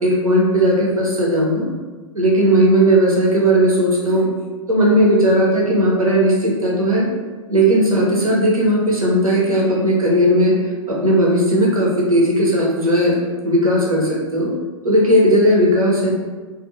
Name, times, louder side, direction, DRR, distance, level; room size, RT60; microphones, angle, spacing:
voice 1, 0.0-1.7 2.1-4.3 4.7-7.1 7.5-10.6 10.9-13.2 13.4-14.5 14.8-16.1, right 1 dB, 90° right, -3 dB, 0.7 m, -16 dB
2.3 x 2.1 x 3.0 m, 1.3 s
figure-of-eight pair, 100°, 18 cm